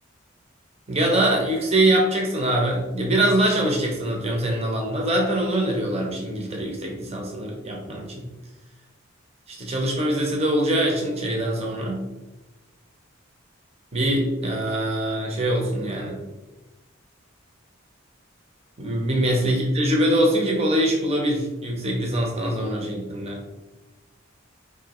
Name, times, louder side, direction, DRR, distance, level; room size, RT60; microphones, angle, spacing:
voice 1, 0.9-8.3 9.5-12.0 13.9-16.2 18.8-23.4, right 1 dB, 30° right, 0 dB, 0.6 m, -23 dB
4.8 x 2.8 x 2.9 m, 1.1 s
head